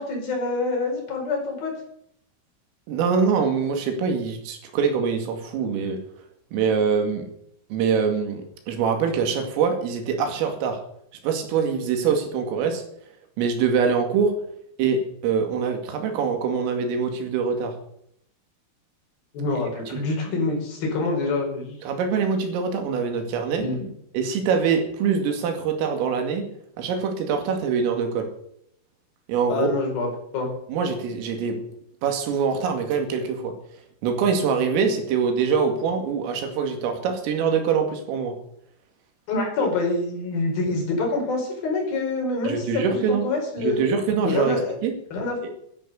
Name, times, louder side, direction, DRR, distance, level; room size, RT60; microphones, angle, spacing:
voice 1, 0.0-1.7 19.3-21.8 23.6-23.9 29.5-30.1 30.3-30.5 39.3-43.8 44.2-44.7 45.1-45.5, left 3 dB, 50° left, 0 dB, 6.3 m, -26 dB
voice 2, 2.9-6.0 6.5-7.2 7.7-10.8 11.2-12.8 13.4-14.3 14.8-17.7 19.9-20.0 21.8-23.6 24.1-26.4 26.8-28.3 29.3-29.7 30.7-31.6 32.0-33.5 34.0-38.3 39.6-39.7 42.4-43.3 43.6-44.9 45.4-45.5, right 6 dB, 80° right, 5 dB, 4.8 m, -24 dB
13.0 x 11.0 x 6.9 m, 0.71 s
omnidirectional pair, 5.9 m